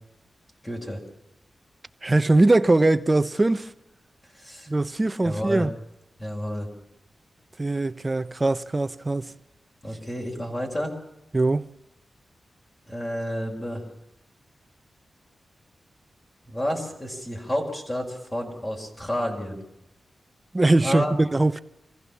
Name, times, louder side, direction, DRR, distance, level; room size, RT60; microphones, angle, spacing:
voice 1, 0.6-1.0 4.3-4.7 5.2-5.7 6.2-6.7 9.8-10.9 12.9-13.8 16.5-19.6 20.8-21.1, equal, 20° left, 5.6 m, -30 dB
voice 2, 2.0-3.7 4.7-5.7 7.6-9.3 11.3-11.7 20.5-21.6, right 2 dB, 30° right, 1.0 m, -21 dB
25.5 x 15.5 x 7.3 m
cardioid pair, 55°, 0 cm